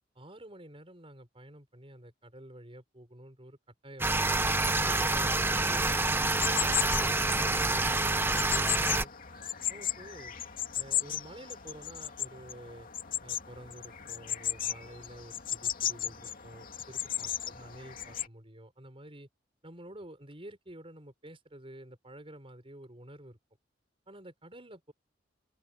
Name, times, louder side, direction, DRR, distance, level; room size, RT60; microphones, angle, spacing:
voice 1, 0.1-3.6 3.8-4.1 4.6-9.1 9.7-10.3 10.8-12.9 13.2-19.3 19.6-23.4 24.1-24.9, right 1 dB, 30° right, 6.2 m, -49 dB
sound 1, 4.0-9.0, right 2 dB, 10° right, 1.0 m, -27 dB
sound 2, 6.3-18.3, left 10 dB, 50° left, 2.5 m, -36 dB
open air
head